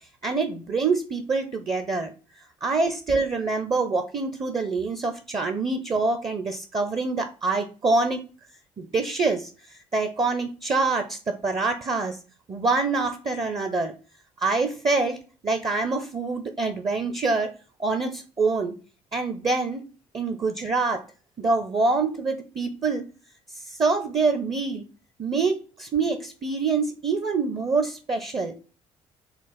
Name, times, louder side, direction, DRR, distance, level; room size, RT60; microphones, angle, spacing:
voice 1, 0.2-2.1 2.6-8.2 8.8-9.5 9.9-12.2 12.5-13.9 14.4-15.2 15.4-17.5 17.8-18.8 19.1-19.8 20.1-21.0 21.4-23.0 23.7-24.9 25.2-28.6, right 3 dB, 30° right, 7 dB, 0.6 m, -25 dB
4.1 x 2.5 x 4.0 m, 0.35 s
figure-of-eight pair, 50°, 16 cm